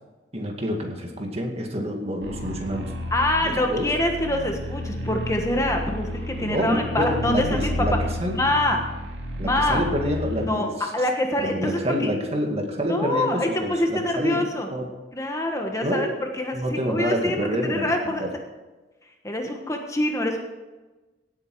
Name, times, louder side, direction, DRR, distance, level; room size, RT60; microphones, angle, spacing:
voice 1, 0.3-2.9 3.4-3.9 6.3-8.4 9.4-10.9 11.4-14.9 15.8-16.1 16.5-18.3, equal, 35° right, 2 dB, 2.0 m, -27 dB
sound 1, 2.2-10.5, left 1 dB, 80° right, 2.0 m, -31 dB
voice 2, 3.1-8.0 8.3-8.8 9.4-9.8 10.4-12.1 12.9-14.7 15.1-17.4 17.6-18.3 19.2-20.4, left 1 dB, 15° left, 3 dB, 1.3 m, -25 dB
17.5 x 8.4 x 4.7 m, 1.2 s
head